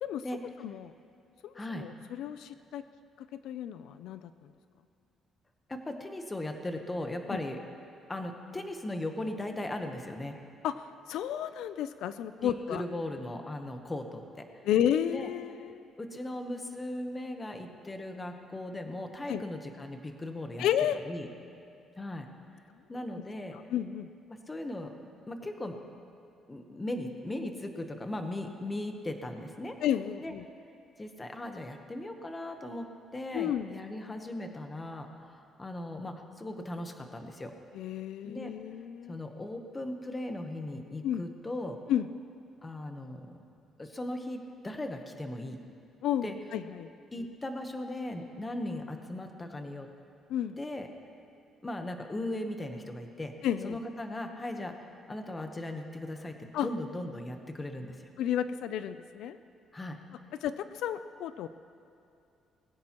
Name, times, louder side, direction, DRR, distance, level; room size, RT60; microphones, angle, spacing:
voice 1, 0.6-0.9 1.4-1.5 1.8-2.8 3.3-4.3 7.3-7.4 10.6-12.8 14.6-15.9 19.3-19.4 20.6-21.0 23.7-24.1 29.8-30.5 33.3-33.7 37.7-39.2 41.0-41.2 41.9-42.1 46.0-46.9 47.2-47.3 50.3-50.6 53.4-53.8 56.5-56.7 58.2-59.4 60.4-61.5, left 10 dB, 75° left, 12 dB, 0.4 m, -32 dB
voice 2, 1.5-1.9 5.7-7.6 8.1-10.4 12.4-14.5 15.1-15.3 16.0-20.7 21.1-21.3 22.0-22.3 22.9-23.6 24.3-24.9 25.3-25.8 26.5-29.8 30.2-30.3 31.0-32.9 33.1-37.5 38.2-38.5 39.1-41.8 42.6-43.4 43.8-45.6 46.2-46.4 47.1-49.9 50.6-50.9 51.6-53.3 53.6-54.7 55.1-58.1 59.7-60.0, left 1 dB, 15° left, 5 dB, 0.9 m, -38 dB
21.0 x 15.5 x 3.0 m, 2.6 s
cardioid pair, 165°, 0 cm